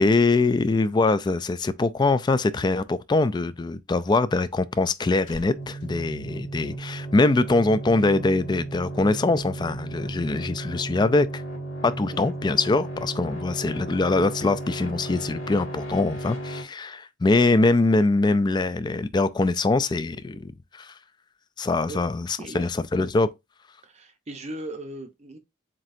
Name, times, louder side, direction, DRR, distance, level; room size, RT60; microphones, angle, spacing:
voice 1, 0.0-11.4 11.8-20.9 21.6-23.3, left 3 dB, 20° left, 0.3 m, -23 dB
sound 1, 4.7-7.2 7.5-7.7, equal, 40° left, 2.4 m, -49 dB
sound 2, 5.5-16.6, right 2 dB, 75° left, 2.0 m, -35 dB
voice 2, 23.8-25.4, right 1 dB, 35° right, 0.6 m, -38 dB
7.4 x 2.8 x 2.5 m
head